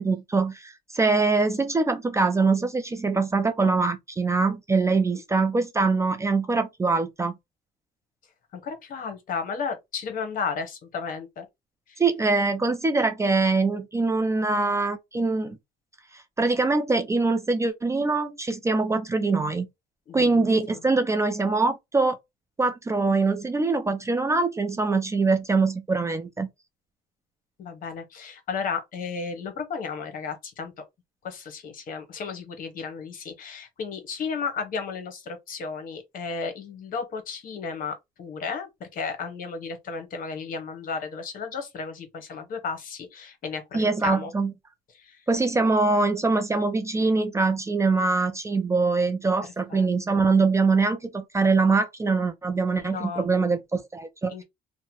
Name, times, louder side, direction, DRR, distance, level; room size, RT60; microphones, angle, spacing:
voice 1, 0.0-7.3 12.0-15.6 16.1-19.7 20.1-22.2 22.6-26.5 43.7-44.5 45.3-54.4, right 3 dB, 15° right, 0.4 m, -23 dB
voice 2, 8.6-11.5 11.9-12.0 20.1-20.5 20.7-20.8 27.6-30.7 31.2-44.3 44.9-45.2 49.7-49.9 50.1-50.2 52.8-53.3 54.3-54.4, left 5 dB, 55° left, 0.9 m, -34 dB
2.8 x 2.1 x 2.9 m
cardioid pair, 110°, 17 cm